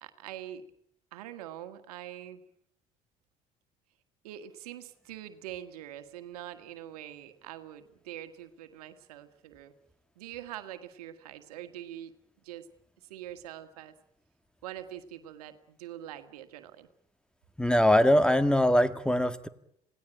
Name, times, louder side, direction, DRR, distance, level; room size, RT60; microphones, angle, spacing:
voice 1, 0.0-0.6 1.1-2.4 4.2-9.7 10.2-12.1 12.4-12.7 13.1-13.9 14.6-16.9, right 12 dB, 85° right, 9 dB, 1.7 m, -44 dB
voice 2, 17.6-19.5, left 1 dB, 5° left, 12 dB, 1.8 m, -22 dB
27.0 x 18.5 x 9.0 m, 0.73 s
hypercardioid pair, 65°, 19 cm